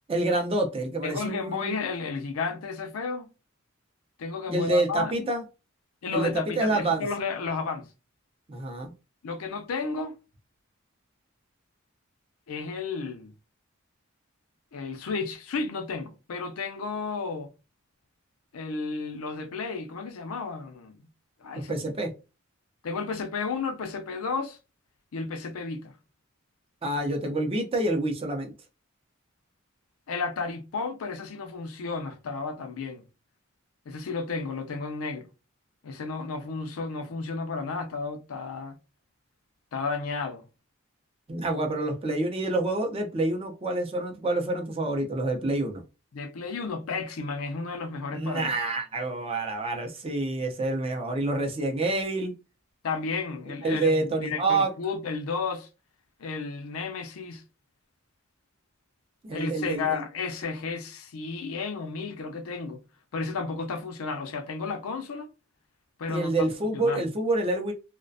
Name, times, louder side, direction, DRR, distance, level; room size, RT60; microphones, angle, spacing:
voice 1, 0.1-1.8 4.5-5.4 6.1-7.1 8.5-8.9 21.7-22.1 26.8-28.5 41.3-45.8 48.1-52.3 53.6-54.7 59.2-60.0 66.1-67.7, right 2 dB, 25° right, 0.5 m, -27 dB
voice 2, 1.0-3.3 4.2-5.3 6.0-7.9 9.2-10.1 12.5-13.3 14.7-17.5 18.5-20.9 21.4-21.7 22.8-24.6 25.1-25.9 30.1-33.0 33.9-35.3 35.8-38.8 39.7-40.4 46.1-48.6 52.8-55.7 56.2-57.4 59.3-62.8 63.1-65.3 66.0-66.3 66.7-67.1, left 4 dB, 85° left, 0.5 m, -32 dB
2.3 x 2.1 x 2.5 m
head